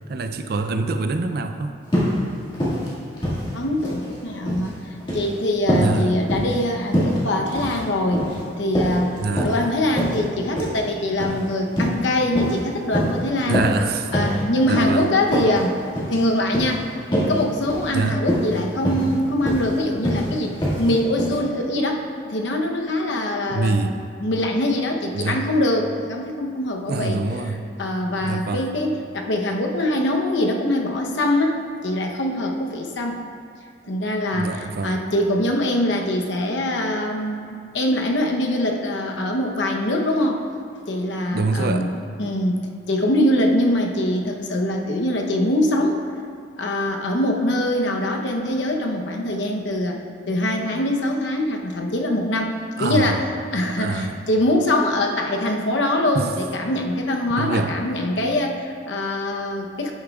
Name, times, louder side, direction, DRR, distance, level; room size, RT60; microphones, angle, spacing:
voice 1, 0.1-1.7 5.7-6.2 9.2-9.5 13.4-14.1 14.7-15.1 17.9-18.2 23.5-24.0 25.1-25.4 26.9-27.6 28.2-28.7 34.3-35.0 41.3-41.9 52.8-53.2 53.8-54.1 56.1-56.3 57.4-57.7, right 3 dB, 55° right, 7 dB, 0.4 m, -25 dB
sound 1, 1.9-2.2 2.5-2.9 3.2-4.1 4.3-4.7 5.0-5.3 5.7-5.9 6.3-6.6 6.9-7.2 7.5-7.8 8.1-8.4 8.7-9.6 10.0-10.2 10.6-10.8 11.2-11.4 11.7-12.0 12.3-12.6 12.9-13.2 13.5-13.8 14.1-14.4 14.7-14.9 15.3-15.6 16.0-16.2 16.5-16.7 17.1-17.4 17.7-17.9 18.2-18.6 18.8-19.1 19.5-19.7 20.0-20.3 20.6-20.9 21.2-21.4, equal, 25° left, 2.0 m, -23 dB
voice 2, 3.5-4.7 5.1-8.3 8.6-13.6 14.1-15.8 16.1-16.9 17.3-23.7 24.2-27.2 27.8-33.2 33.9-40.4 40.9-41.9 42.2-46.0 46.6-52.5 52.8-53.3 53.5-59.9, left 1 dB, 75° left, 1 dB, 0.9 m, -23 dB
9.8 x 8.5 x 2.4 m, 2.2 s
head